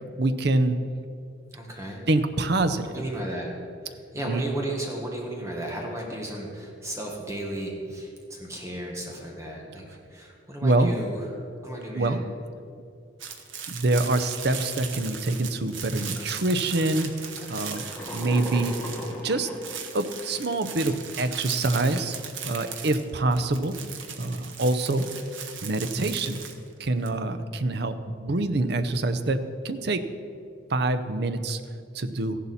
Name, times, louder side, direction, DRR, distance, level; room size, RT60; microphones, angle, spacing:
voice 1, 0.2-0.8 2.1-2.9 4.1-4.4 10.6-10.9 11.9-12.2 13.7-17.1 17.5-17.8 18.1-18.7 19.2-19.5 19.9-22.2 22.4-23.8 24.2-25.1 25.6-26.4 26.8-30.0 30.7-31.6 31.9-32.4, right 2 dB, 55° right, 10 dB, 0.7 m, -25 dB
voice 2, 1.5-2.0 2.9-3.5 3.9-11.2 11.6-12.2, right 1 dB, 15° right, -1 dB, 1.5 m, -34 dB
sound 1, 13.2-19.3 19.5-27.1, right 7 dB, 90° right, 1.2 m, -38 dB
sound 2, 13.9-14.1 14.6-15.1 15.7-15.8 16.2-20.2, equal, 10° left, 1.5 m, -38 dB
14.5 x 11.0 x 4.2 m, 2.5 s
head